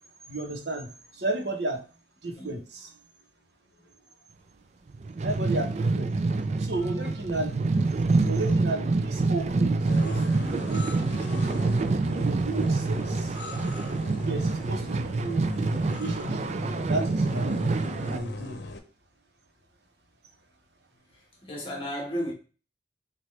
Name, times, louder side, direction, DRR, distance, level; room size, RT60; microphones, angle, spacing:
voice 1, 0.3-0.9 1.1-1.8 2.2-2.9 5.2-6.1 6.6-7.6 8.3-11.6 12.1-13.4 14.2-15.5 15.8-16.5 16.9-17.8 18.1-18.6, right 2 dB, 75° right, 1.0 m, -33 dB
sound 1, 4.9-18.2, right 3 dB, 40° right, 0.4 m, -26 dB
voice 2, 6.8-7.1 9.4-9.5 21.1-22.3, equal, 30° left, 1.4 m, -36 dB
sound 2, 9.9-18.8, left 2 dB, 85° left, 0.8 m, -39 dB
6.4 x 2.5 x 3.3 m
head